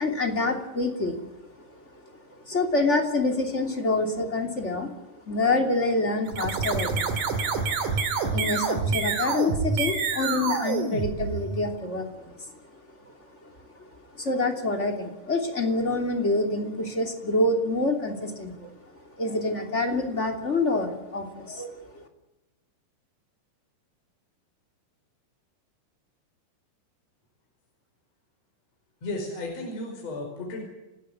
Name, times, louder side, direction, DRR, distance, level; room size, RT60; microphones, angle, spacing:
voice 1, 0.0-1.3 1.6-1.8 2.3-7.4 7.9-12.5 13.0-13.1 13.4-13.5 14.1-18.7 19.2-22.0, left 2 dB, 20° left, 3 dB, 2.6 m, -27 dB
sound 1, 6.3-11.7, right 5 dB, 55° right, 3.6 m, -27 dB
voice 2, 29.0-30.7, left 2 dB, 40° left, 0 dB, 6.0 m, -34 dB
30.0 x 14.0 x 9.5 m, 1.0 s
omnidirectional pair, 4.8 m